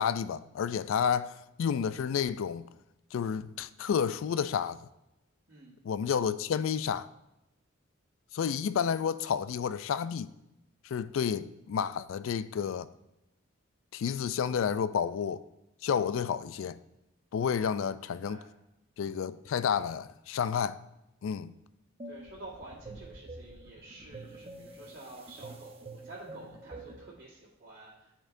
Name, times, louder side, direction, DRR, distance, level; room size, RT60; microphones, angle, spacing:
voice 1, 0.0-2.7 3.1-4.8 5.8-7.1 8.3-10.3 10.8-12.9 13.9-15.4 15.8-16.8 17.3-18.4 19.0-20.8 21.2-21.5, left 7 dB, 70° left, 0.3 m, -30 dB
voice 2, 17.5-17.8 18.2-18.5 22.1-28.1, right 2 dB, 50° right, 1.6 m, -49 dB
sound 1, 22.0-27.1, right 2 dB, 25° right, 0.7 m, -47 dB
13.5 x 4.4 x 2.6 m
head